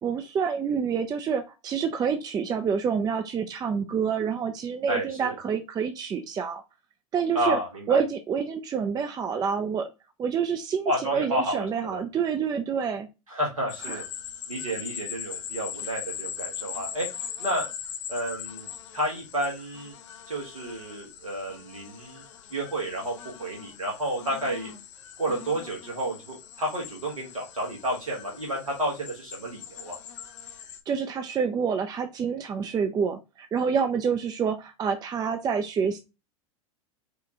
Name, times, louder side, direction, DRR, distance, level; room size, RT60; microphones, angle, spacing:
voice 1, 0.0-6.6 7.1-7.6 7.9-9.9 10.2-13.1 13.9-14.0 30.9-36.0, right 6 dB, 25° right, 7 dB, 0.5 m, -27 dB
voice 2, 4.9-5.4 7.3-8.0 10.8-12.0 13.3-14.0 14.5-17.1 17.4-17.7 18.1-18.7 18.9-19.9 20.3-22.2 22.5-24.7 25.2-30.0, right 1 dB, 85° right, -2 dB, 1.4 m, -31 dB
sound 1, 13.7-30.8, left 9 dB, 65° left, 0.7 m, -41 dB
4.8 x 2.4 x 2.9 m, 0.26 s
hypercardioid pair, 90°, 17 cm